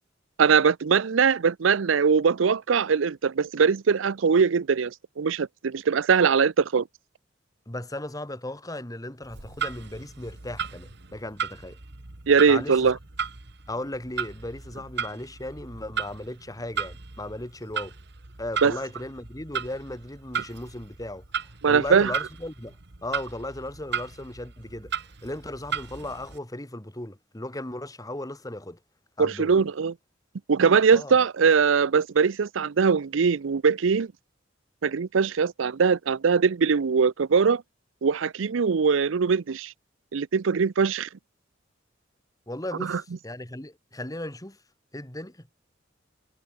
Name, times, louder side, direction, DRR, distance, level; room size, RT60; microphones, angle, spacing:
voice 1, 0.4-6.9 12.3-13.0 18.6-18.7 21.6-22.1 29.2-29.9 30.5-34.1 34.8-37.6 38.0-39.7 40.1-41.1 42.9-43.0, right 5 dB, 90° right, 0.5 m, -21 dB
voice 2, 7.7-11.8 12.5-13.0 13.7-18.0 18.4-22.8 23.0-24.9 25.2-28.8 29.2-29.7 30.9-31.1 42.5-44.6 44.9-45.5, left 1 dB, 20° left, 2.4 m, -36 dB
Clock, 9.2-26.4, right 6 dB, 60° right, 1.7 m, -36 dB
head